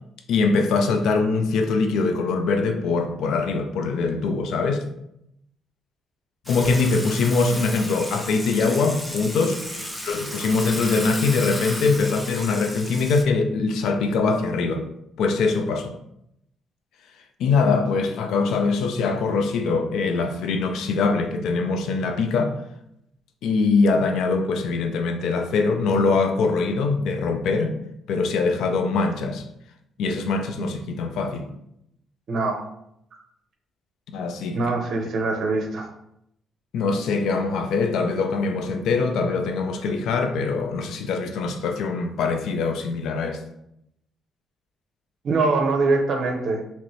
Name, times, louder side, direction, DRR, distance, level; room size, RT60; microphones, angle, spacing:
voice 1, 0.3-4.8 6.5-9.6 10.0-14.9 15.2-15.9 17.4-22.6 23.4-27.8 28.1-29.4 30.0-31.5 34.1-34.6 36.7-43.4, left 4 dB, 80° left, 0.4 m, -23 dB
Water / Water tap faucet / Sink (filling or washing), 6.5-13.2, equal, 5° left, 0.5 m, -34 dB
voice 2, 32.3-32.6 34.5-35.9 45.2-46.6, right 3 dB, 60° right, 0.6 m, -23 dB
2.9 x 2.6 x 3.1 m
cardioid pair, 90°, 0 cm